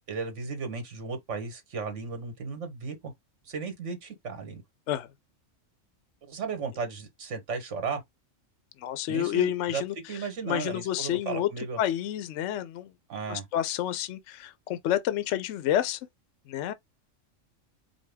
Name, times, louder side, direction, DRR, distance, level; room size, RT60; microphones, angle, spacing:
voice 1, 0.1-3.1 3.4-4.6 6.2-8.0 9.1-9.8 10.1-11.8 13.1-13.5, right 5 dB, 65° right, 1.6 m, -35 dB
voice 2, 8.8-9.9 10.5-11.5 11.8-12.9 13.3-16.0 16.5-16.7, left 12 dB, 70° left, 0.8 m, -29 dB
5.0 x 2.2 x 3.4 m
omnidirectional pair, 1.4 m